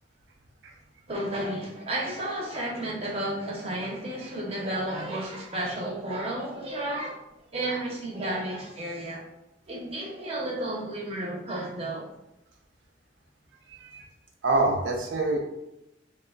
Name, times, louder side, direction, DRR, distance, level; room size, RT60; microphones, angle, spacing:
voice 1, 1.1-7.2 7.5-9.2 9.7-12.1, right 1 dB, 30° right, -3 dB, 0.5 m, -32 dB
voice 2, 14.4-15.4, right 2 dB, 85° right, 0 dB, 0.5 m, -26 dB
2.9 x 2.1 x 2.3 m, 0.87 s
head